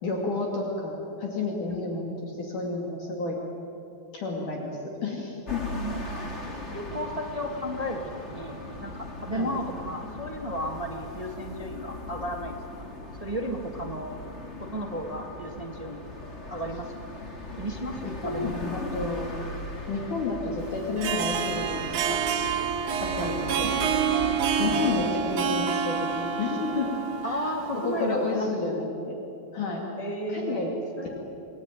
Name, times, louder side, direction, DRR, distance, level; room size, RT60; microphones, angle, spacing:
voice 1, 0.0-3.4 4.1-5.6 9.3-9.5 18.0-19.4 19.9-22.2 23.0-23.7 24.6-29.2 29.5-29.8 30.3-30.7, left 3 dB, 60° left, -1 dB, 3.8 m, -31 dB
voice 2, 1.7-2.0 5.7-6.0 6.7-12.9 13.2-14.2 14.6-16.0 16.5-17.1 17.6-18.6 23.2-23.7 24.5-24.8 27.2-28.8 30.0-31.2, equal, 25° right, 2 dB, 0.8 m, -34 dB
sound 1, 5.5-25.0, left 2 dB, 20° left, 2.1 m, -38 dB
Harp, 20.8-28.2, right 7 dB, 65° right, 2.5 m, -28 dB
29.0 x 19.5 x 9.2 m, 2.9 s
omnidirectional pair, 4.2 m